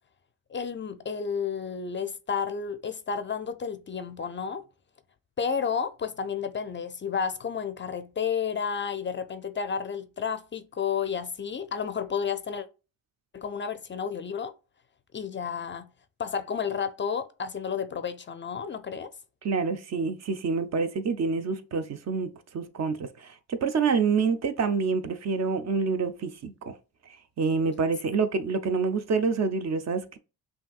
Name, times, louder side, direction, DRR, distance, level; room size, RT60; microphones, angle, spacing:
voice 1, 0.5-4.6 5.4-12.7 13.3-14.5 15.1-15.9 16.2-19.1, left 6 dB, 35° left, 0.4 m, -31 dB
voice 2, 19.4-26.5 27.4-30.2, right 5 dB, 50° right, 0.7 m, -27 dB
5.6 x 2.7 x 2.3 m
cardioid pair, 75°, 35 cm